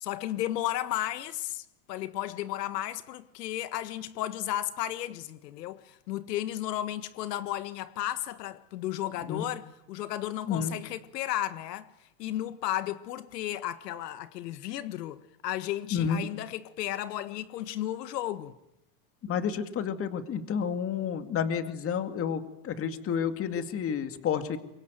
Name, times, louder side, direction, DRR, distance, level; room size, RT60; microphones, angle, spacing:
voice 1, 0.0-11.9 12.2-18.5, left 13 dB, 90° left, 1.7 m, -34 dB
voice 2, 15.9-16.2 19.3-24.6, left 7 dB, 30° left, 2.2 m, -30 dB
25.0 x 22.5 x 9.3 m
supercardioid pair, 140°, 47 cm